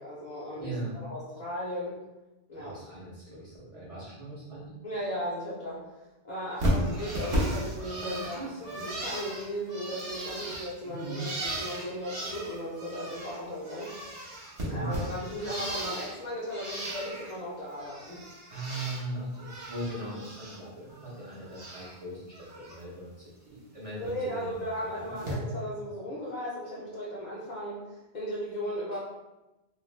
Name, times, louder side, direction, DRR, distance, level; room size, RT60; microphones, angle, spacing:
voice 1, 0.0-2.0 2.5-2.8 4.8-5.8 6.2-13.9 14.7-18.2 24.0-29.0, equal, 50° left, -7 dB, 0.6 m, -36 dB
voice 2, 0.6-1.0 2.5-4.8 8.0-8.6 10.8-11.3 14.6-14.9 18.5-23.1 23.5-25.1 28.9-29.0, right 2 dB, 40° right, -8 dB, 0.6 m, -39 dB
Bird, 6.6-13.4 13.6-16.2 16.5-17.3 17.7-19.0 19.3-20.6 20.9-22.0 22.3-22.8 24.0-24.2 25.2-25.3, equal, 60° right, 1.0 m, -35 dB
2.4 x 2.2 x 3.1 m, 1.0 s
omnidirectional pair, 1.2 m